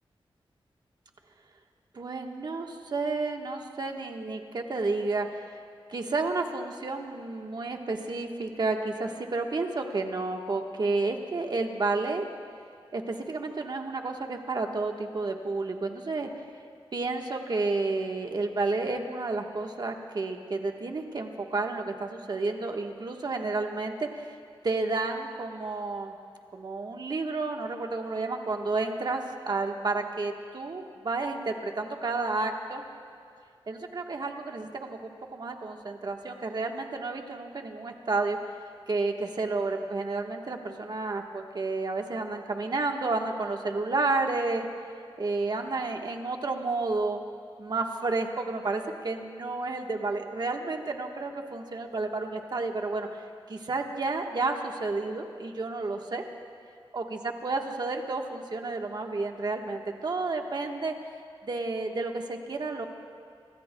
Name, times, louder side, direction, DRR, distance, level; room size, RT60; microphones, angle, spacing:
voice 1, 1.9-5.6 5.9-12.2 12.9-16.3 16.9-24.4 24.6-26.1 26.5-32.8 33.7-38.4 38.9-44.7 45.2-47.2 47.6-53.2 53.5-56.2 56.9-60.9 61.4-62.9, right 3 dB, 50° right, 3 dB, 1.3 m, -31 dB
26.5 x 23.0 x 2.3 m, 2.3 s
wide cardioid pair, 115°, 9 cm